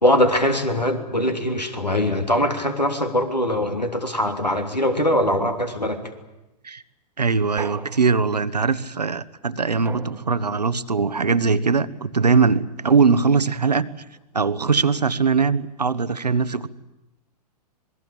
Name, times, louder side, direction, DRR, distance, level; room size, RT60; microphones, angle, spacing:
voice 1, 0.0-6.0, left 1 dB, 90° left, 5 dB, 3.2 m, -22 dB
voice 2, 7.2-13.9 14.3-16.7, right 5 dB, 80° right, 14 dB, 1.2 m, -21 dB
sound 1, 7.6-8.6 9.9-10.7, right 5 dB, 10° right, 1.4 m, -38 dB
26.5 x 20.5 x 8.7 m, 0.96 s
figure-of-eight pair, 105°, 21 cm